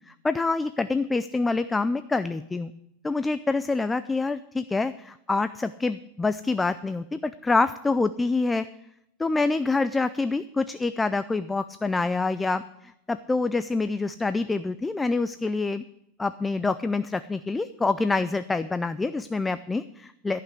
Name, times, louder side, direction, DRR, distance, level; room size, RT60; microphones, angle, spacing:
voice 1, 0.1-2.7 3.0-8.7 9.2-15.8 16.2-20.4, left 3 dB, 10° left, 12 dB, 0.3 m, -26 dB
14.5 x 5.9 x 8.1 m, 0.81 s
supercardioid pair, 160°, 0 cm